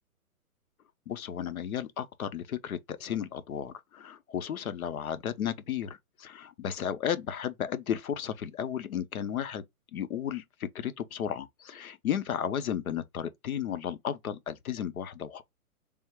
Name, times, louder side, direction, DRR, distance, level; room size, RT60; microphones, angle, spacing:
voice 1, 1.1-9.6 9.9-15.4, left 9 dB, 70° left, 0.8 m, -34 dB
3.5 x 2.5 x 4.4 m
hypercardioid pair, 160°, 44 cm